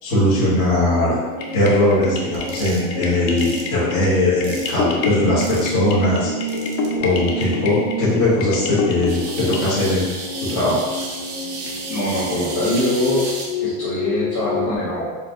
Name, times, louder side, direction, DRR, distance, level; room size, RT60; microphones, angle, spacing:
voice 1, 0.0-1.2 1.5-6.3 7.0-10.0 10.4-10.8, left 1 dB, 25° left, -10 dB, 1.3 m, -19 dB
sound 1, 0.7-14.8, left 1 dB, ahead, 1.1 m, -29 dB
sound 2, 1.4-9.8, left 4 dB, 80° left, 0.8 m, -29 dB
sound 3, 2.3-2.8 3.4-3.6 4.4-4.8 5.4-5.8 6.5-6.9 7.4-7.5 9.1-13.5, right 3 dB, 35° right, 0.5 m, -33 dB
voice 2, 11.9-13.2 13.6-15.1, equal, 45° left, -9 dB, 1.3 m, -23 dB
4.5 x 2.4 x 3.7 m, 1.3 s
cardioid pair, 180°, 50 cm